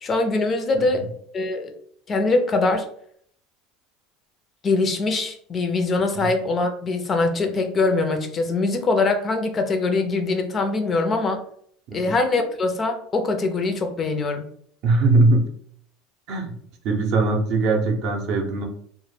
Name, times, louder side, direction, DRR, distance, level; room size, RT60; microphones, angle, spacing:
voice 1, 0.0-1.1 1.3-1.7 2.1-2.9 4.6-11.4 11.9-14.5, left 3 dB, 30° left, 6 dB, 0.4 m, -23 dB
voice 2, 14.8-15.5 16.3-16.5 16.8-18.6, right 3 dB, 55° right, 3 dB, 0.5 m, -21 dB
2.0 x 2.0 x 3.1 m, 0.63 s
supercardioid pair, 125°, 0 cm